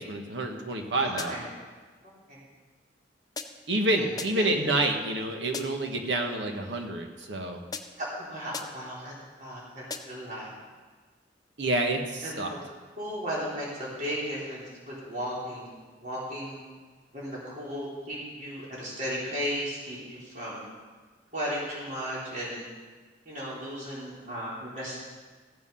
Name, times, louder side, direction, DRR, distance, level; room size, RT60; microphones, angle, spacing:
voice 1, 0.0-1.3 3.7-7.6 11.6-12.5, right 2 dB, 85° right, 4 dB, 1.4 m, -28 dB
voice 2, 0.9-1.5 2.0-2.4 3.9-4.0 4.3-4.5 8.0-9.1 9.4-10.5 12.2-12.6 13.0-16.6 17.1-20.6 21.3-22.7 23.3-25.0, equal, 45° right, -7 dB, 3.8 m, -35 dB
sound 1, 1.2-1.6 3.4-3.8 4.2-4.6 5.5-6.0 7.7-8.1 8.5-9.0 9.9-10.3, left 4 dB, 20° left, 0.6 m, -40 dB
14.5 x 7.6 x 5.7 m, 1.4 s
head